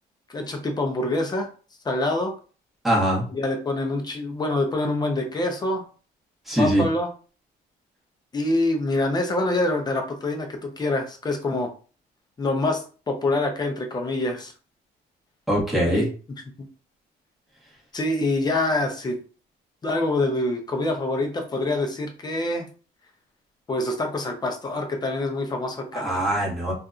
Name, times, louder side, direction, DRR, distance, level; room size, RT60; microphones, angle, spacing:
voice 1, 0.3-1.5 1.8-2.3 3.3-5.8 6.6-7.1 8.3-11.7 12.4-14.5 15.8-16.1 17.9-19.2 19.8-22.7 23.7-26.3, left 2 dB, 25° left, 3 dB, 0.7 m, -25 dB
voice 2, 2.8-3.2 6.5-6.8 15.5-16.1 25.9-26.7, right 1 dB, ahead, -5 dB, 1.2 m, -22 dB
2.6 x 2.4 x 2.4 m, 0.37 s
cardioid pair, 110°, 17 cm